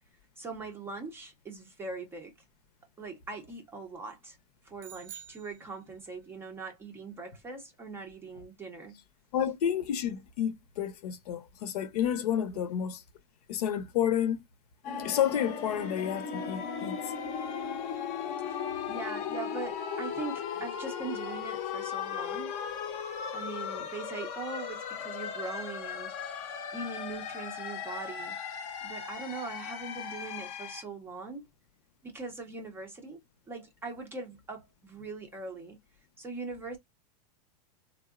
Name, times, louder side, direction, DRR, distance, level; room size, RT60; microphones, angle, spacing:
voice 1, 0.4-2.3 3.0-4.4 4.6-9.0 12.5-12.6 18.4-22.5 23.3-28.4 28.8-31.5 32.0-33.2 33.5-35.8 36.2-36.8, right 3 dB, 10° right, 0.5 m, -41 dB
sound 1, 4.8-6.3, right 10 dB, 55° right, 0.6 m, -49 dB
voice 2, 9.3-13.0 13.5-14.4 15.0-17.0, left 9 dB, 75° left, 0.7 m, -30 dB
sound 2, 14.8-30.8, left 7 dB, 35° left, 0.6 m, -37 dB
3.6 x 2.0 x 2.3 m
supercardioid pair, 160°, 20 cm